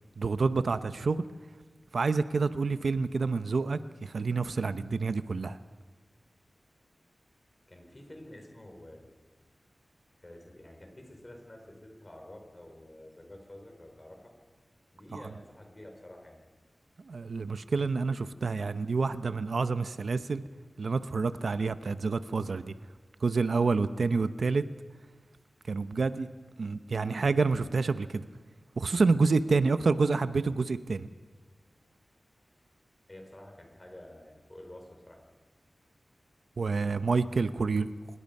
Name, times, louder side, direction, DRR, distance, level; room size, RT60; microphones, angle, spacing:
voice 1, 0.2-1.2 1.9-5.6 15.1-15.2 17.0-20.4 20.8-22.7 23.2-24.6 25.7-26.3 26.6-28.2 28.8-31.1 36.6-37.9, right 4 dB, 70° right, 11 dB, 0.8 m, -28 dB
voice 2, 7.7-9.1 10.2-14.3 14.9-16.4 33.1-35.2, left 1 dB, 25° left, 2 dB, 5.2 m, -49 dB
25.5 x 21.5 x 5.5 m, 1.4 s
wide cardioid pair, 105°, 0 cm